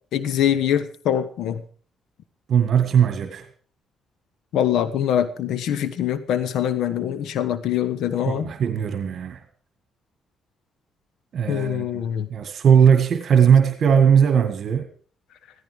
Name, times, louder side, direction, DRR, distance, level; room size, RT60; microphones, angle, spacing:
voice 1, 0.1-1.6 4.5-8.5 11.5-12.3, left 10 dB, 80° left, 13 dB, 1.2 m, -23 dB
voice 2, 2.5-3.5 8.3-9.4 11.3-12.0 12.3-14.8, right 7 dB, 60° right, 8 dB, 1.9 m, -18 dB
16.0 x 14.5 x 5.0 m, 0.43 s
cardioid pair, 90°, 0 cm